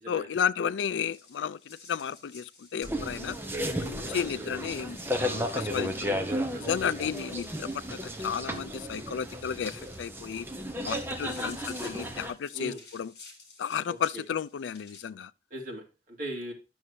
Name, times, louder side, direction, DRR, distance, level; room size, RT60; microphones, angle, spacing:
voice 1, 0.1-3.4 3.8-5.9 6.6-7.7 8.2-10.5 10.9-13.1 13.6-15.3, left 7 dB, 85° left, 0.4 m, -33 dB
sound 1, 0.8-15.1, left 4 dB, 60° left, 3.0 m, -53 dB
sound 2, 2.8-12.3, equal, 10° right, 0.8 m, -34 dB
voice 2, 4.0-4.5 6.0-6.7 11.2-11.5 12.5-12.8 13.9-14.2 15.5-16.5, right 1 dB, 50° right, 2.4 m, -40 dB
11.0 x 6.2 x 2.7 m
head